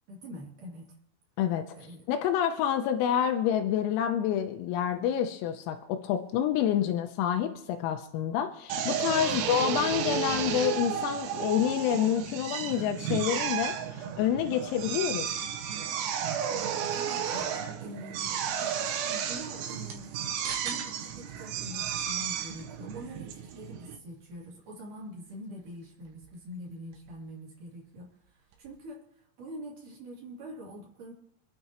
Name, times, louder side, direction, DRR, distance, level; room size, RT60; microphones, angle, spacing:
voice 1, 0.1-0.9 1.7-2.1 9.3-9.4 16.8-31.1, equal, 45° right, -4 dB, 3.8 m, -45 dB
voice 2, 2.1-15.3, left 9 dB, 85° left, 5 dB, 3.5 m, -28 dB
Drill, 8.7-24.0, right 8 dB, 85° right, 3.7 m, -33 dB
sound 1, 18.2-28.9, right 6 dB, 65° right, 3.2 m, -51 dB
27.5 x 9.6 x 3.0 m, 0.73 s
omnidirectional pair, 5.9 m